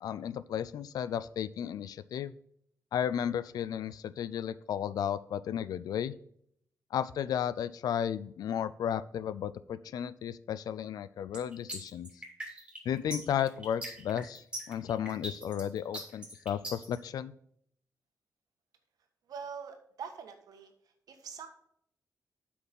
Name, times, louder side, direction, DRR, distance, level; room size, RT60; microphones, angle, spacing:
voice 1, 0.0-2.4 2.9-6.1 6.9-12.2 12.8-17.3, left 9 dB, 85° left, 16 dB, 0.5 m, -34 dB
sound 1, 11.3-17.0, right 1 dB, 15° right, 3.1 m, -40 dB
voice 2, 19.3-20.7 21.1-21.5, right 6 dB, 80° right, 6 dB, 1.4 m, -43 dB
8.0 x 6.0 x 5.4 m, 0.67 s
cardioid pair, 120°, 6 cm